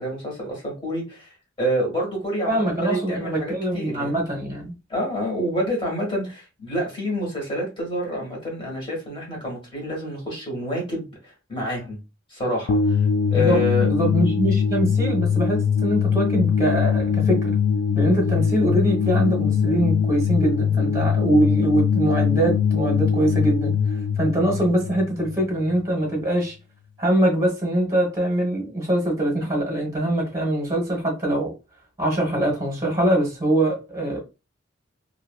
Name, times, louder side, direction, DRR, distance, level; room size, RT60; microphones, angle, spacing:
voice 1, 0.0-4.1 4.9-12.0 12.3-13.1 13.3-13.9, equal, 25° left, 1.7 m, -28 dB
voice 2, 2.5-4.7 13.3-17.5 17.9-23.7 24.2-26.5 27.0-31.5 32.0-34.2, right 1 dB, 15° right, 1.1 m, -23 dB
sound 1, 12.7-25.8, left 6 dB, 85° left, 0.3 m, -22 dB
2.9 x 2.6 x 2.3 m
head